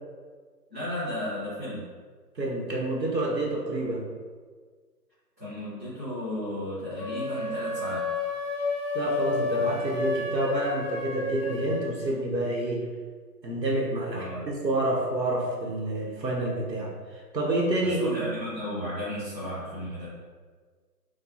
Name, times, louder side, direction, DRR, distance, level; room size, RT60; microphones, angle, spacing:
voice 1, 0.7-1.8 5.4-8.1 14.1-14.5 17.8-20.1, left 1 dB, 10° right, -18 dB, 1.3 m, -34 dB
voice 2, 2.4-4.0 8.9-12.8 13.4-18.3, right 1 dB, 85° right, -1 dB, 1.2 m, -28 dB
sound 1, 7.0-11.9, left 3 dB, 50° right, 1.2 m, -30 dB
6.5 x 2.3 x 2.9 m, 1.5 s
figure-of-eight pair, 165°, 50 cm